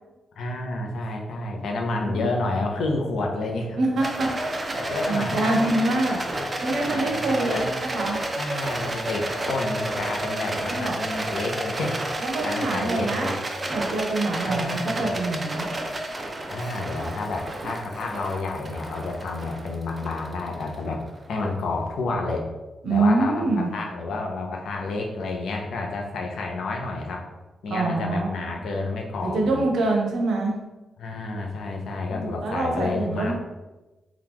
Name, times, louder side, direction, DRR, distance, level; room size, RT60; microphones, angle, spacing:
voice 1, 0.4-3.8 4.7-6.0 6.3-7.7 8.4-12.0 12.4-13.3 14.4-15.4 16.5-21.0 21.3-22.5 22.9-27.2 27.6-29.6 31.0-33.3, left 2 dB, 80° left, 1 dB, 0.5 m, -30 dB
voice 2, 3.7-4.8 5.1-6.2 6.6-8.2 10.6-11.0 12.2-13.3 13.7-15.7 22.8-23.7 27.7-28.3 29.2-30.5 32.1-33.3, right 2 dB, 85° right, 0 dB, 0.7 m, -25 dB
Rattle, 4.0-21.3, right 1 dB, 25° right, 0.5 m, -31 dB
2.9 x 2.3 x 3.5 m, 1.1 s
cardioid pair, 110°, 0 cm